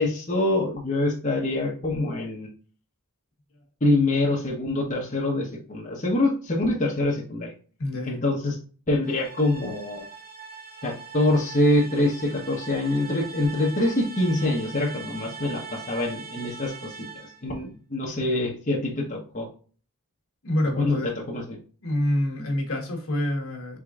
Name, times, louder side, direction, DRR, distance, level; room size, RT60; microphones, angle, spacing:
voice 1, 0.0-2.5 3.8-7.5 8.1-8.6 8.9-10.0 10.8-16.9 17.4-19.5 20.8-21.6, left 2 dB, 35° left, -3 dB, 1.1 m, -25 dB
voice 2, 7.8-8.2 18.1-18.2 20.4-21.1 21.8-23.8, left 1 dB, 65° left, 1 dB, 1.4 m, -27 dB
sound 1, 9.0-17.5, right 5 dB, 90° right, 2.1 m, -41 dB
5.0 x 3.6 x 2.4 m, 0.39 s
head